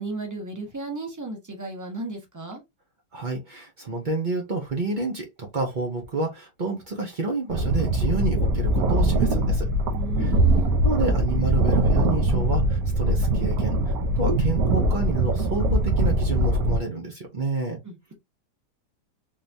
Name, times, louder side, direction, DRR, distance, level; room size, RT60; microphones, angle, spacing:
voice 1, 0.0-2.6 9.9-10.7 17.8-18.1, right 3 dB, 10° right, 0.9 m, -34 dB
voice 2, 3.1-9.7 10.2-17.8, right 3 dB, 75° right, 0.4 m, -29 dB
sound 1, 7.5-16.8, right 1 dB, 60° right, 1.1 m, -22 dB
3.8 x 3.4 x 2.7 m
omnidirectional pair, 2.2 m